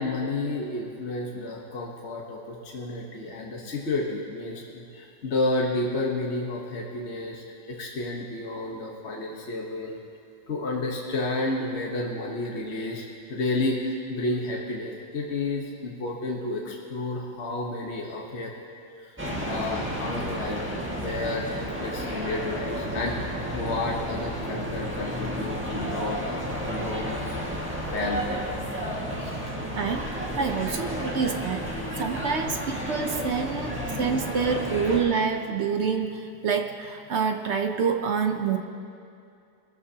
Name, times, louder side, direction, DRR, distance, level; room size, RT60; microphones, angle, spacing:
voice 1, 0.0-10.0 10.5-18.5 19.0-19.1 19.4-20.6 20.9-21.5 21.8-27.4 27.8-28.5 29.6-29.8 31.7-32.0 32.4-32.5 33.5-33.6, left 2 dB, 40° left, -2 dB, 1.3 m, -31 dB
sound 1, 19.2-35.0, equal, 5° right, 1.6 m, -32 dB
voice 2, 29.7-30.1 30.4-31.7 32.0-38.6, right 6 dB, 60° right, 5 dB, 0.7 m, -27 dB
21.5 x 13.5 x 2.8 m, 2.5 s
omnidirectional pair, 1.9 m